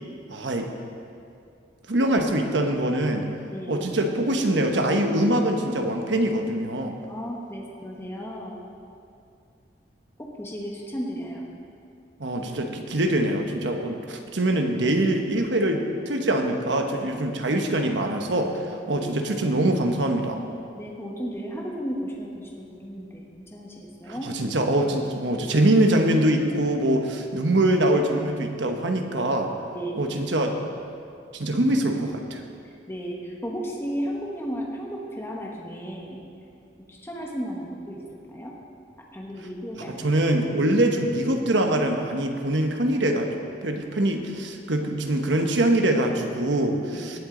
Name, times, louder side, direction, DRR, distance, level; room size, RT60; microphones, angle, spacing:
voice 1, 0.3-0.7 1.9-3.3 3.7-6.9 12.2-20.4 24.1-29.5 30.0-30.6 31.3-32.4 39.8-43.3 43.6-47.2, right 1 dB, 80° right, 4 dB, 1.1 m, -23 dB
voice 2, 3.5-3.9 7.1-8.6 10.2-11.5 18.9-19.1 20.8-24.3 29.7-30.0 32.9-36.2 36.9-38.0 38.3-38.5 39.0-40.2 46.9-47.1, equal, 15° left, -2 dB, 1.1 m, -34 dB
18.0 x 8.0 x 3.9 m, 2.5 s
head